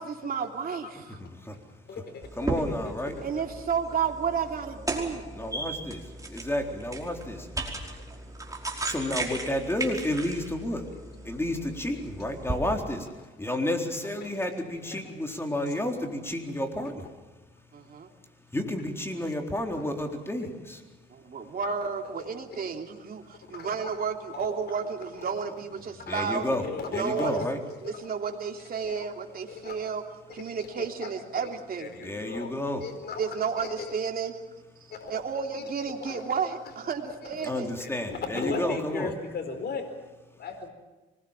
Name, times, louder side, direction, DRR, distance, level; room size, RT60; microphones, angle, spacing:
voice 1, 0.0-1.2 3.2-5.3 17.7-18.1 19.1-19.2 21.1-26.4 26.9-27.4 27.8-30.0 30.3-31.9 33.2-34.4 35.1-37.7, right 6 dB, 50° right, 3 dB, 3.2 m, -32 dB
voice 2, 1.2-1.6 1.9-2.0 2.4-3.2 5.3-7.5 8.8-10.9 11.2-13.1 13.4-17.1 18.5-20.8 26.0-26.6 26.9-27.6 32.0-32.9 37.4-39.1, left 1 dB, 10° left, 3 dB, 4.0 m, -31 dB
voice 3, 1.9-2.3 2.7-3.3 5.6-5.7 9.3-9.4 10.7-10.8 14.2-14.3 14.9-15.0 19.5-20.1 21.5-21.9 22.6-22.7 23.5-24.0 24.3-24.5 26.1-28.1 28.8-29.1 29.5-29.8 30.3-31.1 31.4-31.5 31.8-32.5 32.8-33.2 33.6-33.9 34.9-35.2 35.5-35.7 36.0-36.2 37.1-39.8 40.4-40.7, left 4 dB, 55° left, 5 dB, 4.4 m, -37 dB
sound 1, 2.2-12.6, right 2 dB, 15° right, 5.0 m, -36 dB
25.0 x 21.0 x 7.4 m, 1.2 s
cardioid pair, 90°, 20 cm